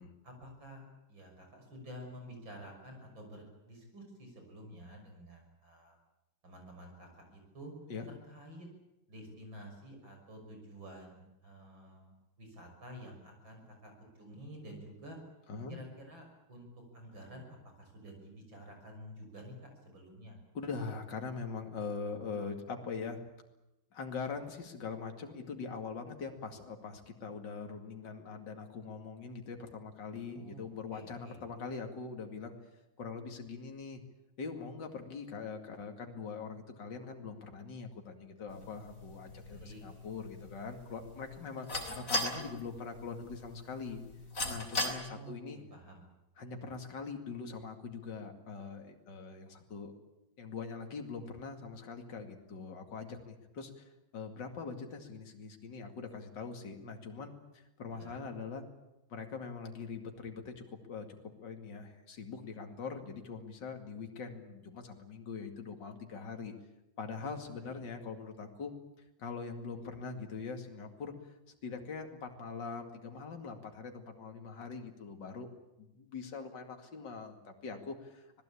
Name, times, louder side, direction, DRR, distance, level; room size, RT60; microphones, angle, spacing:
voice 1, 0.2-6.0 6.4-7.7 8.1-8.7 9.1-15.2 15.7-16.7 16.9-19.5 19.9-20.4 30.3-31.4 39.5-39.8 45.1-46.0 57.9-58.2 67.6-67.8, equal, 70° right, 3 dB, 7.0 m, -50 dB
voice 2, 20.5-23.3 23.9-32.5 33.0-34.0 34.4-44.0 44.5-45.6 46.4-49.9 50.4-58.6 59.1-61.1 61.4-66.5 67.0-68.7 69.2-71.3 71.6-75.5 75.8-78.4, left 5 dB, 60° left, 4 dB, 2.9 m, -42 dB
sound 1, 38.5-44.9, left 1 dB, 40° left, 3.8 m, -40 dB
26.0 x 19.0 x 8.5 m, 0.93 s
omnidirectional pair, 2.2 m